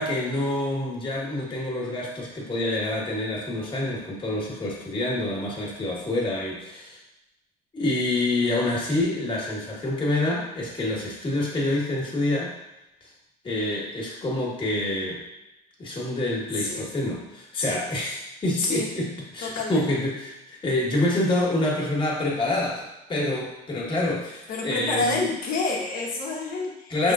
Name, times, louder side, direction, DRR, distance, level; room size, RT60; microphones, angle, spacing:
voice 1, 0.0-7.0 7.7-12.5 13.0-13.1 13.4-15.2 15.8-25.3 26.9-27.1, left 1 dB, 30° left, -3 dB, 1.4 m, -27 dB
voice 2, 19.4-19.9 24.5-27.1, left 3 dB, 65° left, -2 dB, 1.2 m, -28 dB
5.2 x 3.6 x 2.4 m, 0.93 s
cardioid pair, 100°, 16 cm